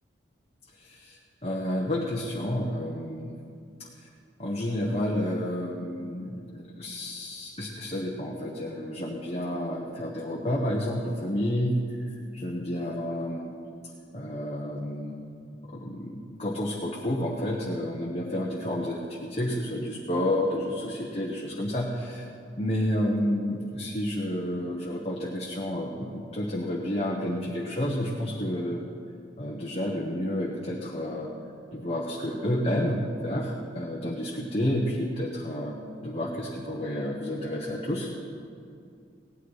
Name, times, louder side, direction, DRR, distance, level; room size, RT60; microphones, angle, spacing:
voice 1, 0.8-3.3 4.4-11.8 12.1-13.4 14.1-15.2 15.7-22.2 22.6-28.8 29.4-31.3 31.7-35.8 36.0-38.1, left 1 dB, 30° left, -3 dB, 1.0 m, -30 dB
17.0 x 10.0 x 4.8 m, 2.4 s
head